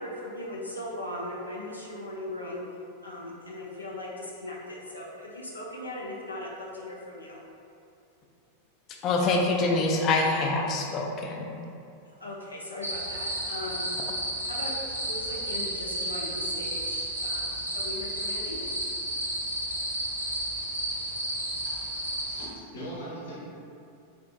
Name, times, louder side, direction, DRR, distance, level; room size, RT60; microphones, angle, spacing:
voice 1, 0.0-2.6 3.0-7.4 12.2-13.9 14.4-14.7 15.0-17.5 17.7-18.6, left 1 dB, 80° left, -4 dB, 0.5 m, -38 dB
voice 2, 9.0-11.6, left 3 dB, 35° left, 0 dB, 0.5 m, -25 dB
sound 1, 12.8-22.5, right 1 dB, 85° right, 0.6 m, -32 dB
voice 3, 21.7-23.4, right 1 dB, 65° left, -7 dB, 1.1 m, -41 dB
3.9 x 3.3 x 2.5 m, 2.5 s
figure-of-eight pair, 90°, 0 cm